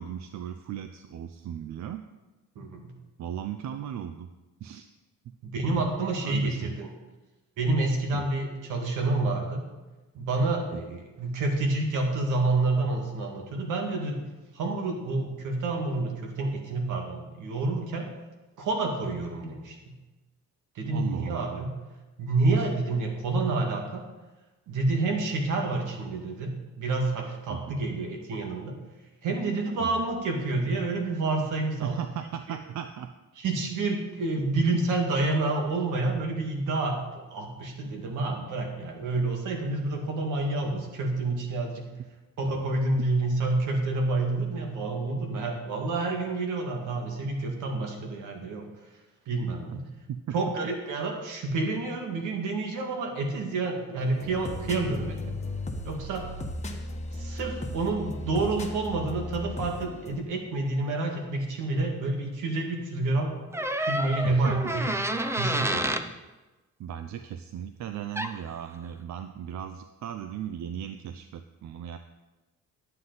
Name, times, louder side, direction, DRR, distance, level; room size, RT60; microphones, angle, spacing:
voice 1, 0.0-2.0 3.2-4.3 4.6-4.9 6.2-6.7 8.1-8.3 10.7-11.0 20.8-21.6 22.6-22.7 27.5-27.8 29.8-30.1 31.8-33.1 50.1-50.4 64.2-64.7 66.8-72.0, right 9 dB, 65° right, 9 dB, 0.6 m, -37 dB
voice 2, 2.6-2.9 5.4-6.9 7.6-9.6 10.1-14.2 14.5-18.1 18.6-19.9 20.8-21.7 22.2-24.0 24.7-28.8 29.2-32.0 33.4-41.9 42.4-48.7 49.3-49.8 50.3-55.4 55.8-56.3 57.2-63.3 63.8-64.9 65.4-65.9, right 3 dB, 85° right, 2 dB, 1.9 m, -28 dB
sound 1, 54.0-60.2, left 1 dB, 25° left, 1.2 m, -36 dB
sound 2, 63.5-66.1 68.2-68.4, right 1 dB, 10° right, 0.6 m, -29 dB
11.0 x 7.8 x 4.0 m, 1.1 s
cardioid pair, 90°, 30 cm